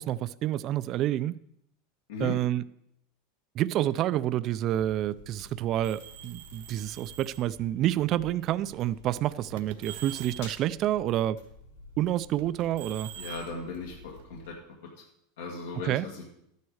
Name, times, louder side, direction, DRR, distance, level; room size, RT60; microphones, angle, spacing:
voice 1, 0.0-1.4 2.2-2.6 3.5-11.4 12.0-13.1 15.8-16.1, right 13 dB, 35° right, 0.4 m, -28 dB
sound 1, 4.8-14.5, left 2 dB, 65° left, 5.0 m, -51 dB
sound 2, 5.8-7.5 8.4-8.7 9.5-10.6 12.4-14.5, right 12 dB, 80° right, 1.1 m, -45 dB
voice 2, 13.2-14.5 14.8-14.9 15.4-16.2, left 4 dB, 90° left, 2.0 m, -37 dB
12.5 x 9.4 x 4.7 m
supercardioid pair, 150°, 0 cm